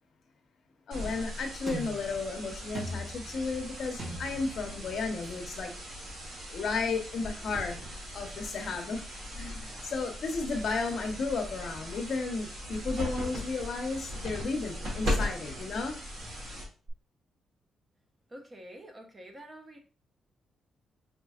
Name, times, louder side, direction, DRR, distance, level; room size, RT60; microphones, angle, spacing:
voice 1, 0.9-5.7 6.5-7.8 8.1-9.1 9.3-16.0, left 4 dB, 55° left, 0.9 m, -33 dB
sound 1, 0.9-16.9, left 1 dB, 70° right, 2.3 m, -38 dB
sound 2, 1.7-5.6 8.5-8.7, right 1 dB, 50° right, 1.9 m, -42 dB
voice 2, 18.3-19.8, right 1 dB, 20° right, 0.8 m, -47 dB
4.9 x 3.8 x 2.4 m
cardioid pair, 145°, 0 cm